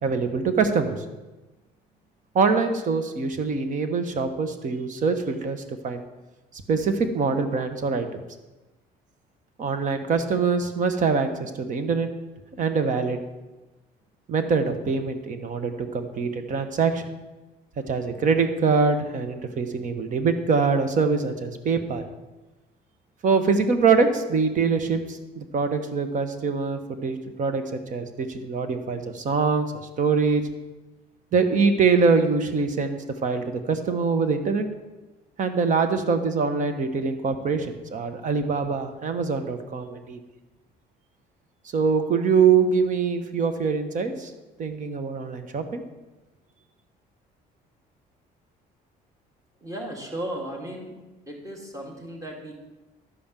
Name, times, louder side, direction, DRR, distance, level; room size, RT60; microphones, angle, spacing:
voice 1, 0.0-1.0 2.3-6.0 6.7-8.2 9.6-12.1 12.6-13.2 14.3-17.0 17.9-22.0 23.2-30.4 31.3-34.7 35.4-40.2 41.7-44.3 44.6-45.8, right 5 dB, 50° right, 8 dB, 1.3 m, -24 dB
voice 2, 49.6-51.0 51.3-52.5, right 1 dB, 20° right, 1 dB, 2.4 m, -35 dB
11.5 x 5.2 x 7.5 m, 1.1 s
cardioid pair, 110°, 17 cm